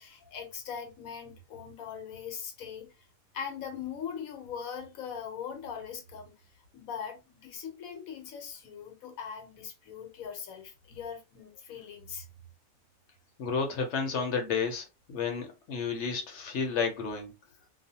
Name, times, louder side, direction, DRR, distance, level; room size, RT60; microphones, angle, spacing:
voice 1, 0.0-3.0 3.3-6.3 6.7-12.3, left 7 dB, 85° left, 1.2 m, -41 dB
voice 2, 13.4-17.3, left 5 dB, 60° left, 0.9 m, -31 dB
2.4 x 2.2 x 2.7 m
omnidirectional pair, 1.4 m